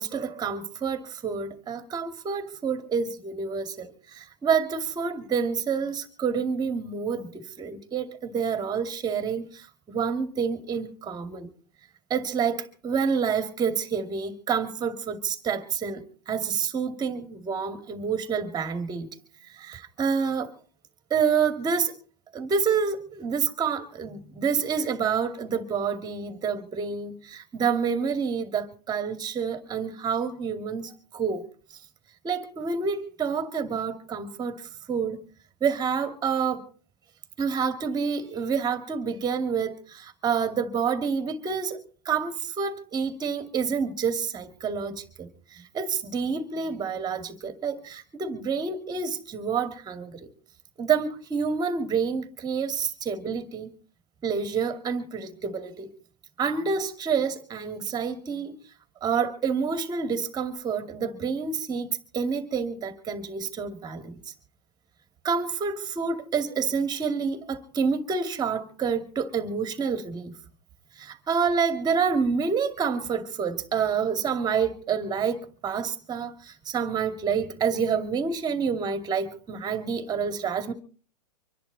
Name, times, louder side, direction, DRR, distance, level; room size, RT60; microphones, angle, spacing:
voice 1, 0.0-9.6 9.9-11.5 12.1-19.1 19.6-20.5 21.1-21.9 22.3-31.4 32.2-34.5 34.9-35.2 35.6-36.6 37.4-41.8 42.1-45.3 45.7-50.3 50.8-53.7 54.2-55.9 56.4-58.5 59.0-61.9 62.1-64.2 65.2-70.3 71.0-80.7, right 6 dB, 20° right, 2.4 m, -28 dB
25.5 x 11.0 x 4.0 m
hypercardioid pair, 115°, 21 cm